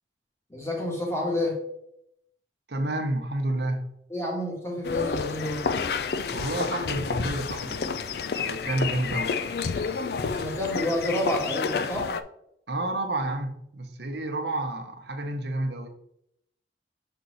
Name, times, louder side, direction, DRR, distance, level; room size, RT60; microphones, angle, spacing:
voice 1, 0.5-1.6 4.1-5.7 10.2-12.1, left 1 dB, 15° left, -1 dB, 1.6 m, -29 dB
voice 2, 2.7-3.9 6.3-9.3 12.7-15.9, right 2 dB, 75° right, 4 dB, 1.0 m, -30 dB
sound 1, 4.8-12.2, left 5 dB, 60° left, 0.4 m, -30 dB
6.1 x 4.5 x 4.0 m, 0.76 s
head